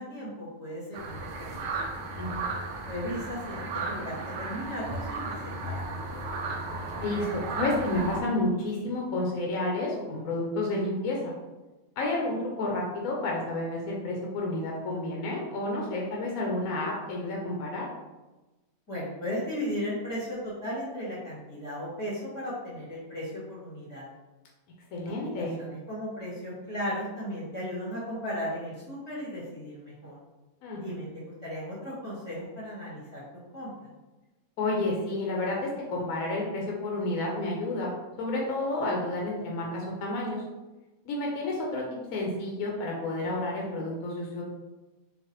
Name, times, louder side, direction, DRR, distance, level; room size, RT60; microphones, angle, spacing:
voice 1, 0.0-1.7 2.9-5.2 5.6-6.2 18.9-24.1 25.4-30.2 30.8-33.2 33.5-33.9, equal, 15° left, -9 dB, 1.0 m, -36 dB
sound 1, 0.9-8.2, right 3 dB, 65° right, 0.7 m, -35 dB
voice 2, 2.1-2.5 7.0-11.3 12.0-17.8 24.9-25.6 30.6-30.9 34.6-37.9 38.2-40.4 41.1-41.8 42.1-44.4, left 2 dB, 75° left, -1 dB, 1.1 m, -30 dB
4.0 x 2.4 x 2.9 m, 1.1 s
omnidirectional pair, 1.6 m